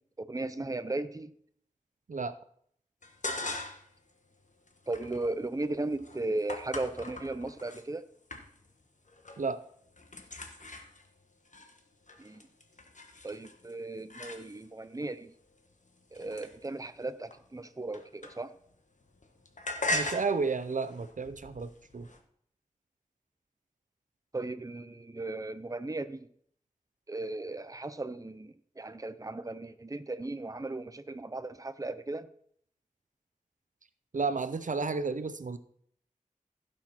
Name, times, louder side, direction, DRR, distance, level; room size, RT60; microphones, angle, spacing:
voice 1, 0.2-1.3 4.9-8.1 12.2-12.4 13.2-15.3 16.1-18.5 24.3-26.3 27.1-32.3, right 2 dB, 25° right, 12 dB, 0.7 m, -36 dB
sound 1, 3.0-4.0 4.3-7.8 8.3-8.8 9.1-9.5 9.8-14.8 15.5-18.7 19.0-22.2, left 1 dB, 65° left, 1.4 m, -40 dB
voice 2, 19.9-22.1 34.1-35.6, right 4 dB, 70° right, 12 dB, 0.6 m, -32 dB
16.0 x 6.4 x 4.3 m, 0.64 s
wide cardioid pair, 60°, 14 cm